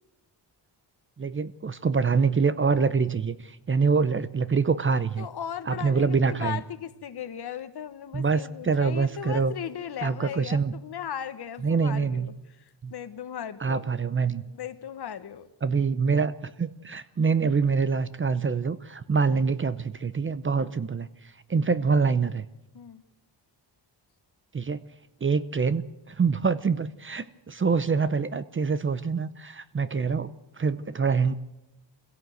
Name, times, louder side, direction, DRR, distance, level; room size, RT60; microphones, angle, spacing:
voice 1, 1.2-5.3 5.7-6.6 8.1-9.5 10.0-10.7 11.6-12.3 12.8-12.9 13.6-14.4 15.6-21.1 21.5-22.5 24.5-24.8 25.2-31.3, right 5 dB, 25° right, 14 dB, 0.7 m, -25 dB
voice 2, 5.2-13.8 14.5-15.5 22.7-23.0, left 9 dB, 60° left, 11 dB, 1.4 m, -37 dB
24.0 x 16.5 x 7.9 m, 0.96 s
cardioid pair, 110°, 45 cm